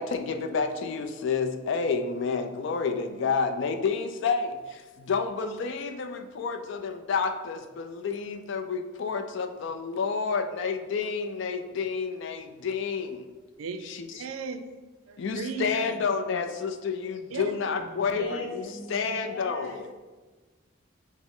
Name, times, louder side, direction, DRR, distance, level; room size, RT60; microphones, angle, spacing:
voice 1, 0.0-13.2 13.9-14.1 15.2-18.2 18.9-19.9, left 5 dB, 60° left, 7 dB, 0.4 m, -29 dB
voice 2, 13.6-16.0 17.3-17.6 18.7-18.8, right 5 dB, 80° right, 9 dB, 0.4 m, -37 dB
voice 3, 17.8-19.9, left 2 dB, 75° left, 1 dB, 0.8 m, -38 dB
5.9 x 2.0 x 3.7 m, 1.3 s
head